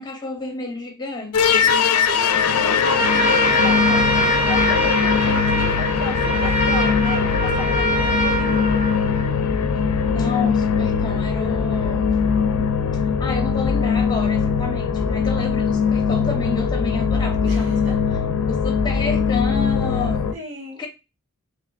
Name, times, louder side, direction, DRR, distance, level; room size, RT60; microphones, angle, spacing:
voice 1, 0.0-1.7 10.1-12.2 12.9-17.8 18.5-20.3 20.8-20.9, left 3 dB, 20° left, 0.9 m, -30 dB
sound 1, 1.3-20.3, left 6 dB, 75° left, 0.4 m, -20 dB
voice 2, 1.6-8.7 17.4-18.0 20.3-20.9, equal, 55° right, 1.5 m, -35 dB
Trumpet, 2.9-9.4, right 2 dB, 10° right, 1.8 m, -24 dB
5.7 x 2.6 x 2.4 m
head